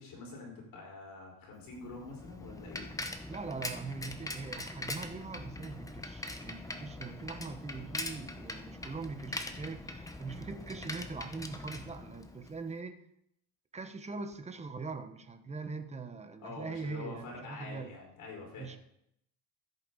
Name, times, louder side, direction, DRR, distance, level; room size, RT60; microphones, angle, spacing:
voice 1, 0.0-2.9 16.4-18.7, left 3 dB, 55° left, -1 dB, 5.1 m, -46 dB
Bicycle, 1.7-12.6, left 2 dB, 10° left, 0.9 m, -42 dB
voice 2, 3.3-13.0 13.7-17.9 18.6-18.8, right 4 dB, 15° right, 8 dB, 1.0 m, -42 dB
14.0 x 8.4 x 4.1 m, 0.74 s
cardioid pair, 130°, 39 cm